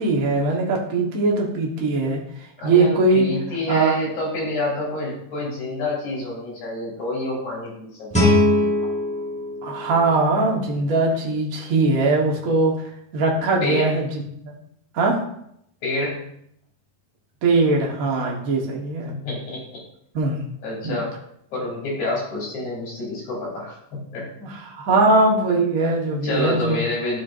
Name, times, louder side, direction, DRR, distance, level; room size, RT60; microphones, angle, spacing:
voice 1, 0.0-3.3 3.7-3.9 9.6-14.5 14.9-15.2 17.4-19.1 20.1-20.4 20.8-21.0 24.4-26.8, right 3 dB, 70° right, -1 dB, 0.8 m, -21 dB
voice 2, 2.6-8.3 8.8-8.9 13.6-14.0 15.8-16.3 19.1-19.6 20.6-21.1 21.5-24.3 26.2-27.2, left 1 dB, 55° left, -3 dB, 4.1 m, -28 dB
Guitar, 8.1-10.9, left 1 dB, 10° left, 0.4 m, -22 dB
13.5 x 4.6 x 2.6 m, 0.72 s
omnidirectional pair, 3.8 m